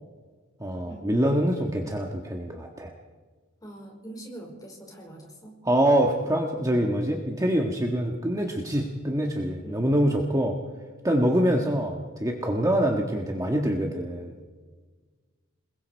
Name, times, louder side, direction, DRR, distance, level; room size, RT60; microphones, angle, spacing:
voice 1, 0.6-2.9 5.6-10.6 11.0-14.3, right 1 dB, 15° right, 1 dB, 1.6 m, -25 dB
voice 2, 3.6-5.5 9.6-9.9, right 1 dB, 20° left, 0 dB, 5.2 m, -43 dB
28.0 x 21.5 x 4.6 m, 1.4 s
head